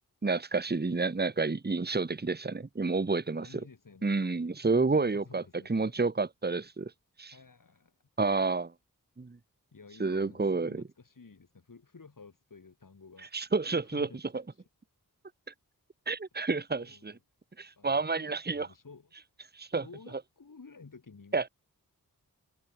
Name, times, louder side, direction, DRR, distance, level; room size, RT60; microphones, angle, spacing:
voice 1, 0.2-3.6 4.0-5.4 5.7-6.9 7.2-7.3 8.2-8.7 9.2-9.4 10.0-10.8 13.3-14.1 16.1-17.2 17.6-18.7 19.5-19.8 21.3-21.5, right 3 dB, 30° right, 1.4 m, -29 dB
voice 2, 3.3-6.0 7.3-8.0 9.7-13.3 13.8-14.2 14.5-14.6 16.4-17.2 17.8-19.1 19.7-21.4, left 4 dB, 60° left, 6.9 m, -53 dB
wide cardioid pair, 75°, 36 cm